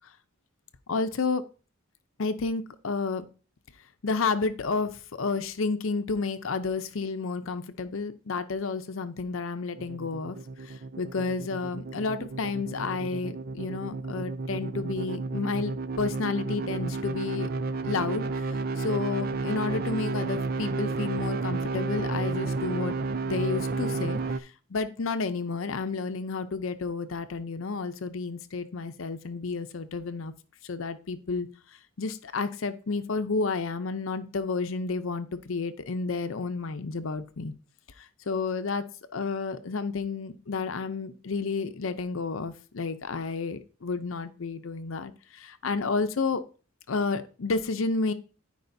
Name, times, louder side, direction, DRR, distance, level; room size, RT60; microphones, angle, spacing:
voice 1, 0.9-1.4 2.2-3.3 4.0-10.4 10.6-17.5 17.8-23.0 23.2-30.3 30.6-31.5 32.0-37.5 38.0-38.8 39.1-46.4 46.9-48.1, left 4 dB, 65° left, 10 dB, 0.6 m, -31 dB
sound 1, 9.8-24.4, right 3 dB, 45° right, 0.4 m, -32 dB
14.0 x 4.8 x 2.7 m, 0.35 s
head